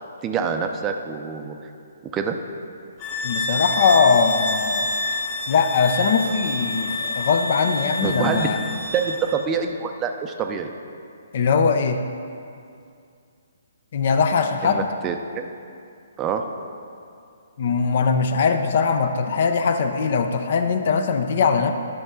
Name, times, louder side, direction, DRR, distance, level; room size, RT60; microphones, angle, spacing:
voice 1, 0.2-1.6 2.1-2.4 8.0-8.5 8.9-10.7 14.6-15.2 16.2-16.4, right 6 dB, 20° right, 6 dB, 0.5 m, -25 dB
sound 1, 3.0-9.4, left 2 dB, 30° left, 1.1 m, -28 dB
voice 2, 3.2-4.9 5.5-8.6 11.3-12.0 13.9-14.9 17.6-21.7, left 5 dB, 50° left, 7 dB, 0.6 m, -21 dB
10.5 x 6.0 x 3.8 m, 2.4 s
figure-of-eight pair, 130°, 0 cm